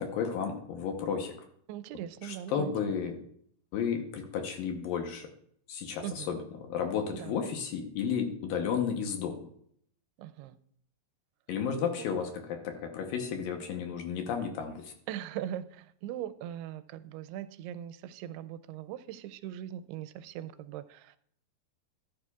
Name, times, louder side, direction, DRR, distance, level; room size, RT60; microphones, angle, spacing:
voice 1, 0.0-1.3 2.2-3.2 3.7-5.3 5.7-6.4 6.7-9.5 11.5-14.9, left 7 dB, 70° left, 4 dB, 2.4 m, -33 dB
voice 2, 1.7-2.7 6.0-6.3 7.1-7.4 10.2-10.6 15.1-21.2, right 11 dB, 85° right, 13 dB, 2.6 m, -40 dB
13.5 x 11.0 x 2.3 m, 0.66 s
omnidirectional pair, 4.6 m